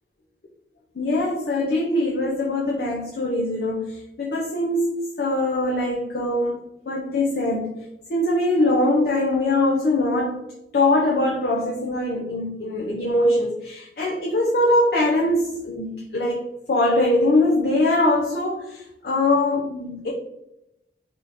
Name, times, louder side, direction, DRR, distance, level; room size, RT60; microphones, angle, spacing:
voice 1, 1.0-6.6 6.9-7.7 8.1-10.4 10.7-20.1, left 1 dB, 55° left, -2 dB, 0.5 m, -22 dB
3.4 x 2.8 x 2.5 m, 0.87 s
head